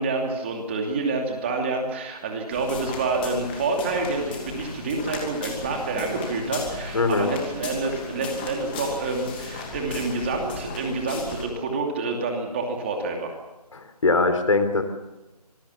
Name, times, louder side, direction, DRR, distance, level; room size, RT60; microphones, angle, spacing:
voice 1, 0.0-13.3, right 3 dB, 20° right, 2 dB, 2.7 m, -28 dB
sound 1, 2.5-11.5, left 4 dB, 15° left, 2.7 m, -36 dB
voice 2, 6.9-7.3 13.7-14.8, left 3 dB, 50° left, 9 dB, 3.8 m, -21 dB
26.0 x 21.0 x 7.2 m, 1.0 s
figure-of-eight pair, 165°, 21 cm